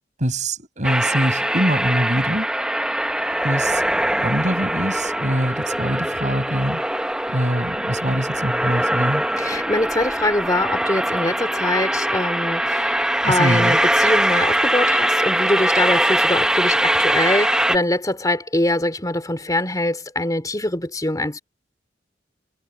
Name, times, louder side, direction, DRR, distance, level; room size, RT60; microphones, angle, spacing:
voice 1, 0.2-2.5 3.4-3.9 4.2-6.8 7.3-9.2 13.2-13.8, right 1 dB, 45° right, 8.0 m, -23 dB
sound 1, 0.8-17.8, right 1 dB, 5° right, 1.1 m, -22 dB
voice 2, 9.4-21.4, left 1 dB, 20° left, 3.2 m, -23 dB
head